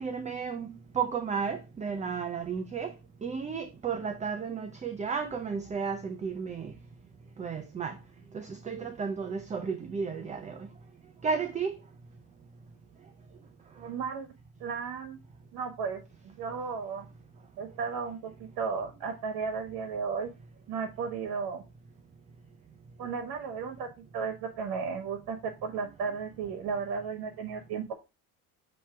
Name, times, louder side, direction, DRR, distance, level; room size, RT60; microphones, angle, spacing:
voice 1, 0.0-2.9 3.2-6.7 7.4-8.0 8.3-10.7 11.2-11.7, right 6 dB, 20° right, 0.5 m, -33 dB
voice 2, 13.8-14.3 14.6-15.2 15.5-17.0 17.6-20.3 20.7-21.6 23.0-27.9, right 5 dB, 60° right, 1.3 m, -34 dB
7.1 x 3.1 x 4.4 m
cardioid pair, 115°, 40 cm